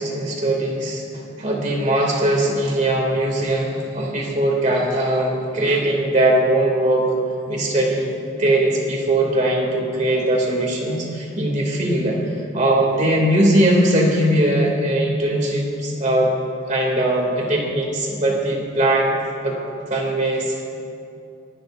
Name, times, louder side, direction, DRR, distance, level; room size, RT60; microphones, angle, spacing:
voice 1, 0.0-7.1 7.5-12.2 12.5-16.4 16.7-19.1 19.4-19.6 19.9-20.6, right 1 dB, 40° right, -2 dB, 2.7 m, -20 dB
26.5 x 12.0 x 2.6 m, 2.6 s
head